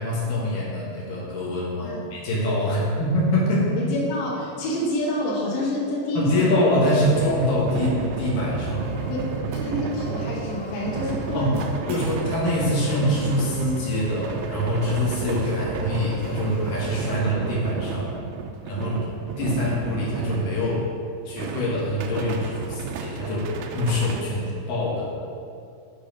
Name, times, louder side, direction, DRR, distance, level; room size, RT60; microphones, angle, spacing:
voice 1, 0.0-3.8 6.1-9.1 11.3-11.6 11.9-18.1 18.7-19.1 19.4-20.9 21.2-25.1, left 1 dB, 60° left, -6 dB, 2.3 m, -24 dB
voice 2, 3.9-6.5 9.1-12.0, left 1 dB, 90° left, -6 dB, 4.0 m, -28 dB
sound 1, 6.8-21.0 21.4-24.2, right 5 dB, 90° right, 2.5 m, -32 dB
sound 2, 8.8-17.2, equal, 70° right, 4.3 m, -40 dB
11.5 x 4.2 x 5.2 m, 2.5 s
omnidirectional pair, 5.8 m